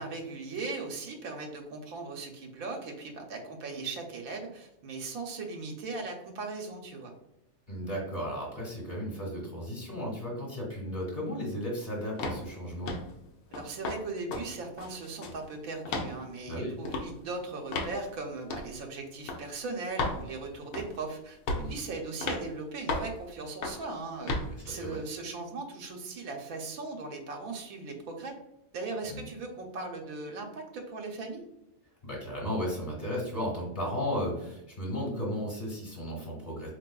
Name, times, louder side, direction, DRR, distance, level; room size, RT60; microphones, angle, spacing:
voice 1, 0.0-7.1 13.5-24.4 24.7-28.4 28.7-31.4, right 3 dB, 85° right, 2 dB, 1.0 m, -38 dB
voice 2, 7.7-12.9 16.5-16.7 21.5-21.8 24.6-25.0 29.1-29.2 32.0-36.7, equal, 35° left, -3 dB, 1.3 m, -34 dB
sound 1, 12.2-12.4 12.9-13.1 13.5-14.0 14.3-14.5 14.8-15.4 15.9-16.1 16.9-17.1 17.7-18.0 18.5-18.7 19.3-19.4 20.0-20.2 20.7-21.0 21.5-21.7 22.2-22.4 22.9-23.1 23.6-23.8 24.3-24.5, left 2 dB, 75° left, 1.0 m, -33 dB
4.0 x 2.7 x 2.2 m, 0.87 s
omnidirectional pair, 1.4 m